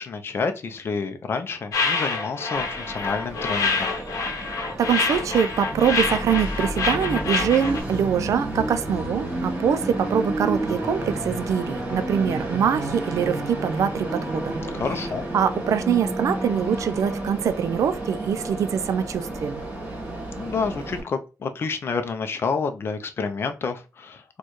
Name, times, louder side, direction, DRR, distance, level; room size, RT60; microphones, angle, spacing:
voice 1, 0.0-3.9 14.7-15.3 20.4-24.4, left 5 dB, 40° left, 0.5 m, -29 dB
sound 1, 1.7-7.8, left 4 dB, 70° left, 0.8 m, -26 dB
Train, 2.5-21.0, right 1 dB, 30° right, 1.2 m, -31 dB
voice 2, 4.8-14.5 15.3-19.6, right 8 dB, 65° right, 0.4 m, -24 dB
4.3 x 2.3 x 3.0 m
wide cardioid pair, 140°, 6 cm